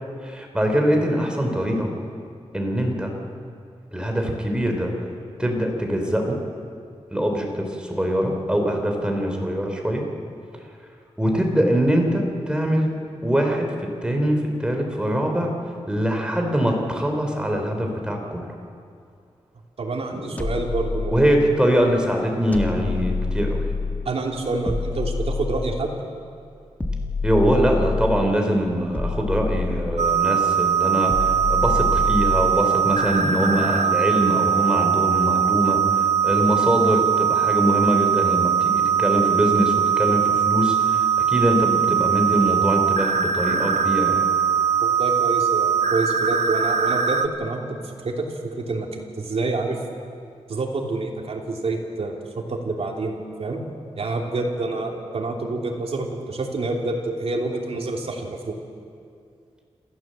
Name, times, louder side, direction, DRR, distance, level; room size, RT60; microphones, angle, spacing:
voice 1, 0.2-1.9 2.5-3.1 3.9-4.9 5.4-6.4 7.1-10.1 11.2-12.9 13.2-13.6 14.0-15.5 15.9-18.4 20.1-20.2 21.1-23.6 27.2-44.2, equal, 10° right, 2 dB, 3.3 m, -23 dB
voice 2, 19.8-21.3 24.0-25.9 44.8-48.3 48.5-49.8 50.5-52.1 52.5-53.6 54.0-58.6, right 3 dB, 65° right, 1 dB, 3.0 m, -27 dB
sound 1, 20.4-21.7 22.5-24.2 24.7-26.1 26.8-28.4 28.9-30.3 31.1-32.7, left 3 dB, 15° left, 1.8 m, -27 dB
sound 2, 30.0-47.3, right 7 dB, 80° right, 0.9 m, -21 dB
27.0 x 15.5 x 7.6 m, 2.3 s
wide cardioid pair, 135°, 11 cm